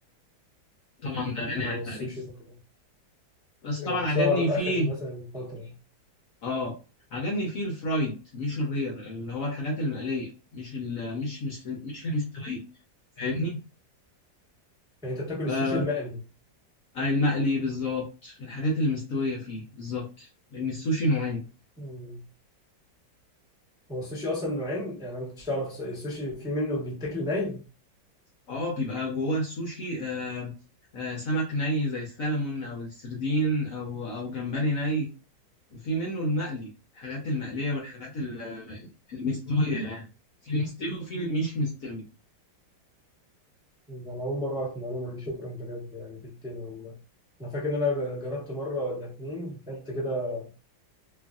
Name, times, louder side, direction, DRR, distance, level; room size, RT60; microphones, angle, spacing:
voice 1, 1.0-2.2 3.6-4.9 6.4-6.8 7.1-12.6 13.2-13.6 15.5-15.9 16.9-21.4 28.5-30.5 30.9-35.1 35.7-40.1 40.4-42.0, left 1 dB, 60° left, 0.9 m, -29 dB
voice 2, 1.6-2.3 3.8-5.7 15.0-16.2 21.8-22.2 23.9-27.6 43.9-47.0 47.4-50.5, left 1 dB, 5° right, 0.6 m, -32 dB
3.0 x 2.5 x 2.3 m
omnidirectional pair, 2.0 m